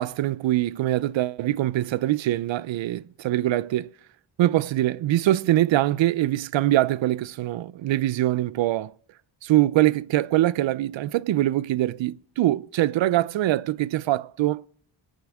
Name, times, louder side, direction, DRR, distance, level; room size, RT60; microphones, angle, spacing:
voice 1, 0.0-3.9 4.4-8.9 9.4-14.6, right 14 dB, 65° right, 0.6 m, -23 dB
24.0 x 9.6 x 3.5 m
cardioid pair, 80°, 50 cm